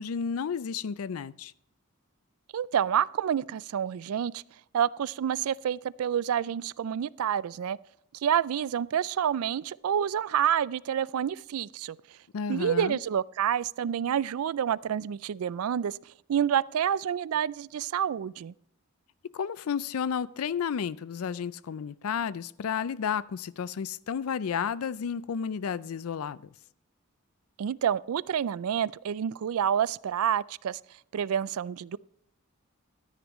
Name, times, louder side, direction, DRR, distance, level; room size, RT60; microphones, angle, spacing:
voice 1, 0.0-1.5 12.3-13.0 19.3-26.5, left 7 dB, 80° left, 0.4 m, -32 dB
voice 2, 2.5-4.4 4.7-7.8 8.2-12.0 12.5-16.0 16.3-18.5 27.6-30.8 31.1-32.0, right 9 dB, 85° right, 0.4 m, -28 dB
13.5 x 10.5 x 3.1 m
head